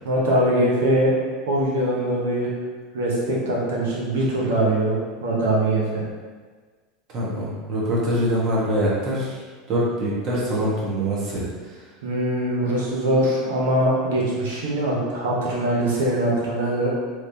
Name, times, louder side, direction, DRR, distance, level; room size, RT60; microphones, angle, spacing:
voice 1, 0.0-1.1 1.5-2.5 2.9-6.1 12.0-16.9, right 1 dB, 85° right, -4 dB, 1.0 m, -22 dB
voice 2, 7.1-9.4 9.7-11.8, equal, 50° right, -6 dB, 1.2 m, -24 dB
3.2 x 3.0 x 2.7 m, 1.5 s
hypercardioid pair, 100°, 0 cm